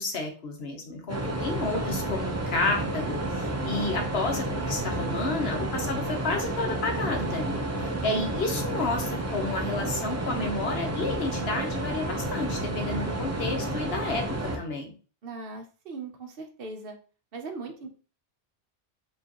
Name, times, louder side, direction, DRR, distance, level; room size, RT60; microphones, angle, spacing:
voice 1, 0.0-14.9, left 3 dB, 65° left, 3 dB, 1.2 m, -31 dB
sound 1, 1.1-14.6, right 1 dB, 20° right, 0.5 m, -31 dB
voice 2, 15.2-17.0 17.3-17.9, right 3 dB, 60° right, 4 dB, 0.9 m, -39 dB
4.6 x 3.1 x 2.9 m, 0.38 s
omnidirectional pair, 1.1 m